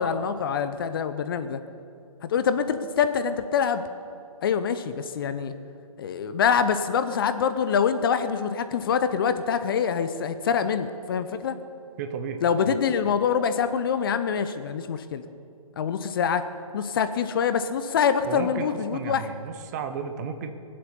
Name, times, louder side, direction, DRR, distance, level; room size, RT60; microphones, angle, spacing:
voice 1, 0.0-1.6 2.2-3.8 4.4-5.5 6.0-11.6 12.4-15.2 15.8-16.4 16.7-19.3, left 7 dB, 40° left, 11 dB, 0.8 m, -25 dB
voice 2, 12.0-12.4 12.7-12.8 18.3-20.5, right 6 dB, 30° right, 7 dB, 1.1 m, -33 dB
22.5 x 7.8 x 6.9 m, 2.5 s
figure-of-eight pair, 135°, 19 cm